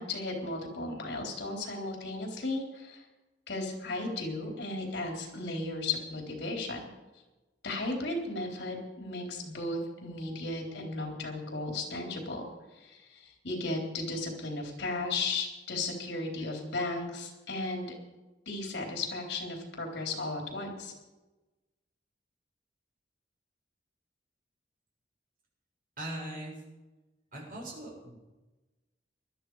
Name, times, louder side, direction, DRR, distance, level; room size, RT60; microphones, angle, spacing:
voice 1, 0.0-3.0 3.5-6.9 7.6-12.5 12.8-17.9 18.5-20.9, left 2 dB, 70° left, 1 dB, 3.9 m, -35 dB
voice 2, 26.0-26.6 27.3-28.2, right 1 dB, 50° right, -3 dB, 7.2 m, -40 dB
20.0 x 12.5 x 4.9 m, 1.1 s
head